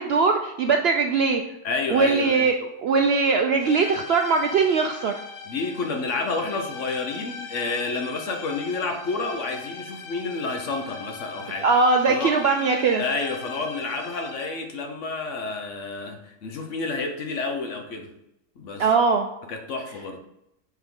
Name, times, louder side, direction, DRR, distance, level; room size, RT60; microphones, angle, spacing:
voice 1, 0.0-1.4 1.9-5.1 11.6-13.0 18.8-19.3, right 4 dB, 90° right, 3 dB, 0.5 m, -21 dB
voice 2, 1.6-2.5 5.5-11.7 12.1-12.4 13.0-18.1 18.6-18.8 19.5-20.2, left 3 dB, 55° left, 4 dB, 1.1 m, -30 dB
sound 1, 3.6-14.7, left 4 dB, 80° left, 1.3 m, -40 dB
7.3 x 3.9 x 3.7 m, 0.86 s
omnidirectional pair, 1.7 m